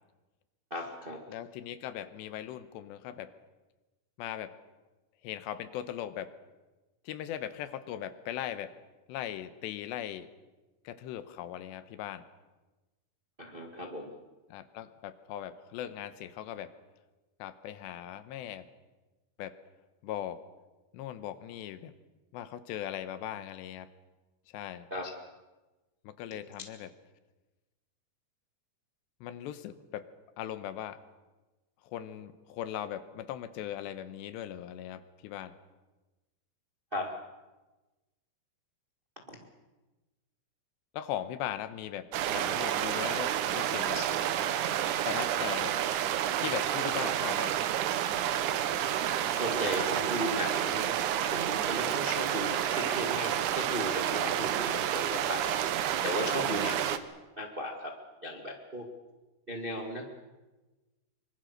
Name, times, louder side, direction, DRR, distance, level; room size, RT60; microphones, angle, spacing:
voice 1, 0.7-1.3 13.4-14.1 24.9-25.1 26.3-26.4 36.9-37.2 39.3-39.4 43.9-44.1 49.2-51.0 51.3-55.7 56.0-57.0 57.4-57.9 58.2-58.9 59.5-60.1, equal, 40° right, 2 dB, 0.8 m, -36 dB
voice 2, 1.3-3.3 4.2-4.5 5.2-6.3 7.1-8.7 9.1-10.3 10.8-12.3 14.5-16.7 17.4-18.7 19.4-19.5 20.0-20.4 20.9-21.9 22.3-23.9 24.5-24.9 26.0-26.9 29.2-30.1 30.4-31.0 31.8-35.6 40.9-44.0 45.1-45.8 46.4-47.6 54.2-54.3 56.4-56.8, left 11 dB, 80° left, 12 dB, 3.2 m, -39 dB
sound 1, 42.1-57.0, right 11 dB, 85° right, 1.7 m, -30 dB
24.5 x 24.5 x 6.6 m, 1.1 s
omnidirectional pair, 5.0 m